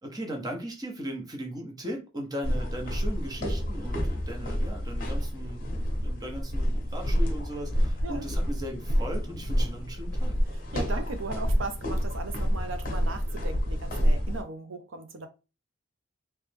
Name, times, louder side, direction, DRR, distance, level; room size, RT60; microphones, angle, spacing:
voice 1, 0.0-10.4, equal, 20° right, 0.8 m, -38 dB
sound 1, 2.4-14.4, equal, 45° left, 0.9 m, -28 dB
voice 2, 10.5-15.3, right 3 dB, 90° right, 0.7 m, -37 dB
3.3 x 3.0 x 3.4 m
head